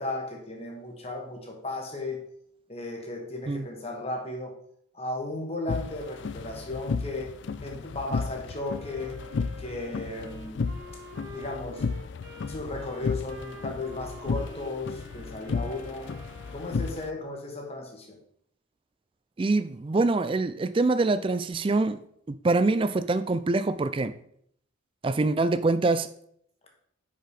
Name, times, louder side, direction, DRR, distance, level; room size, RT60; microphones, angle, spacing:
voice 1, 0.0-2.2 2.7-4.5 4.9-7.3 7.6-9.2 9.6-10.6 11.3-11.8 12.5-16.1 16.5-18.2, left 2 dB, 30° left, 1 dB, 1.3 m, -35 dB
sound 1, 5.7-17.1, left 4 dB, 60° left, 0.4 m, -34 dB
Wind instrument woodwind instrument, 8.6-17.1, equal, 65° right, 2.6 m, -48 dB
voice 2, 19.4-22.0 22.3-24.1 25.0-26.1, right 3 dB, 25° right, 13 dB, 0.3 m, -25 dB
5.9 x 5.5 x 4.9 m, 0.68 s
head